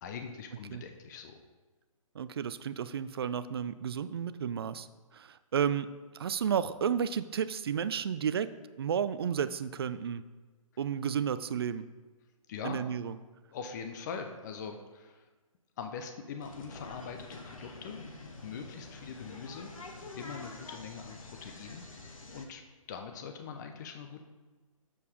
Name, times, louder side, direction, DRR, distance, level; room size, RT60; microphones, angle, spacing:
voice 1, 0.0-1.4 12.5-12.8 13.5-15.3 15.8-18.0 18.4-19.7 20.2-22.6 22.9-24.2, left 6 dB, 30° left, 6 dB, 0.6 m, -42 dB
voice 2, 2.1-4.9 5.1-8.5 8.8-10.2 10.8-11.9 12.6-13.2, right 8 dB, 45° right, 14 dB, 0.4 m, -32 dB
sound 1, 16.4-22.5, left 2 dB, 70° left, 1.4 m, -47 dB
7.1 x 5.4 x 5.0 m, 1.3 s
figure-of-eight pair, 130°, 18 cm